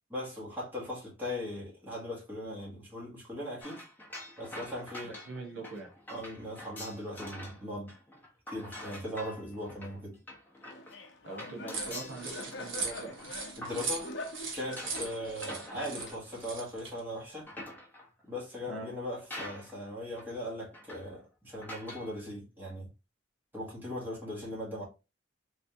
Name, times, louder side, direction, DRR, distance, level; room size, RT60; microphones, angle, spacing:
voice 1, 0.1-3.8 4.4-5.1 6.1-7.9 8.5-10.2 13.6-14.1 14.5-17.5 18.3-22.9 23.5-24.8, left 1 dB, 10° right, 1.4 m, -39 dB
sound 1, 3.6-7.6 7.9-14.3 14.8-16.8 17.3-18.2 18.9-19.0 19.3-19.9 20.2-20.3 20.7-21.2 21.6-22.1, left 1 dB, 10° left, 0.8 m, -46 dB
voice 2, 5.0-5.9 11.2-13.2 15.7-15.9 18.7-18.9, right 3 dB, 90° right, 1.2 m, -43 dB
Laughter, 10.7-16.6, left 2 dB, 60° left, 0.6 m, -44 dB
sound 2, 11.7-17.0, right 4 dB, 65° right, 1.1 m, -39 dB
3.3 x 3.2 x 2.8 m
head